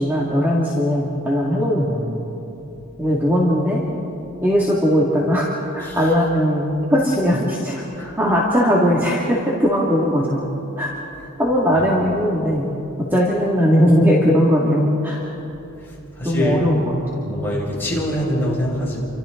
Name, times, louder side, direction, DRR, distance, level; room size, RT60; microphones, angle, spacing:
voice 1, 0.0-2.2 3.0-3.8 4.4-5.5 5.7-10.5 10.8-10.9 11.4-12.7 13.1-15.2 16.2-17.3, equal, 10° right, -6 dB, 2.4 m, -19 dB
voice 2, 16.2-16.7 17.2-19.0, equal, 10° left, -6 dB, 6.0 m, -24 dB
30.0 x 25.5 x 4.0 m, 2.9 s
head